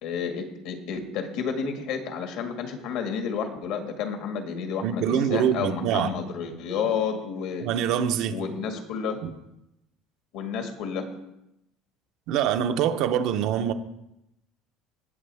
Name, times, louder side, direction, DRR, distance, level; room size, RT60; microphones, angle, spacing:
voice 1, 0.0-7.7 8.3-9.2 10.3-11.1, left 6 dB, 65° left, 1.8 m, -31 dB
voice 2, 4.8-6.1 7.6-8.4 9.2-9.3 12.3-13.7, right 9 dB, 60° right, 0.8 m, -24 dB
18.5 x 7.1 x 3.5 m
cardioid pair, 145°, 0 cm